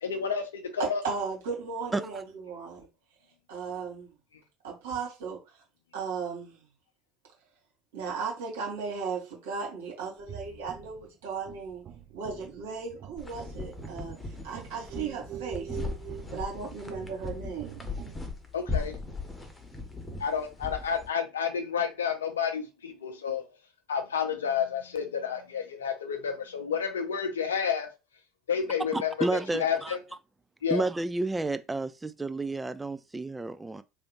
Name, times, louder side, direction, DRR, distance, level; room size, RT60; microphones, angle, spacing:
voice 1, 0.0-1.0 18.5-19.0 20.2-23.4 23.9-27.9 28.5-30.0 30.6-30.8, left 7 dB, 80° left, 0.6 m, -30 dB
voice 2, 1.0-2.9 3.5-4.1 4.6-5.4 5.9-6.6 7.9-11.8 12.1-14.2 14.4-15.8 16.3-17.8, right 5 dB, 70° right, 1.8 m, -36 dB
sound 1, 10.2-18.3, right 10 dB, 45° right, 0.8 m, -45 dB
sound 2, 13.2-21.1, left 3 dB, 15° left, 1.0 m, -38 dB
voice 3, 28.9-30.0 30.7-33.8, right 2 dB, 15° right, 0.4 m, -31 dB
3.3 x 2.5 x 3.0 m
hypercardioid pair, 70°, 0 cm